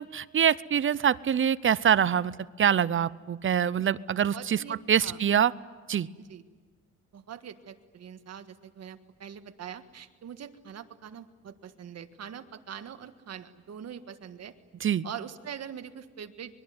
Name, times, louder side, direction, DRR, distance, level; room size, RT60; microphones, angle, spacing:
voice 1, 0.0-5.5 5.9-6.1 14.8-15.1, right 8 dB, 40° right, 19 dB, 0.7 m, -25 dB
voice 2, 4.3-5.2 6.3-6.4 7.1-14.5 15.0-16.6, right 8 dB, 55° right, 9 dB, 1.7 m, -43 dB
25.0 x 22.0 x 9.6 m, 1.5 s
cardioid pair, 90°, 30 cm